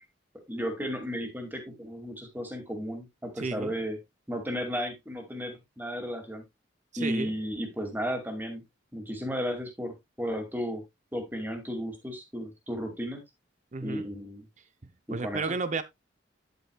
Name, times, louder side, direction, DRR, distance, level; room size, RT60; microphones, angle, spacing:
voice 1, 0.5-4.0 4.3-6.4 7.0-8.6 8.9-10.8 11.1-13.2 13.8-14.4 15.2-15.4, equal, 10° right, 2.3 m, -34 dB
voice 2, 3.4-3.8 6.9-7.3 13.7-14.1 15.1-15.8, right 3 dB, 40° right, 0.6 m, -32 dB
10.5 x 7.9 x 2.3 m
head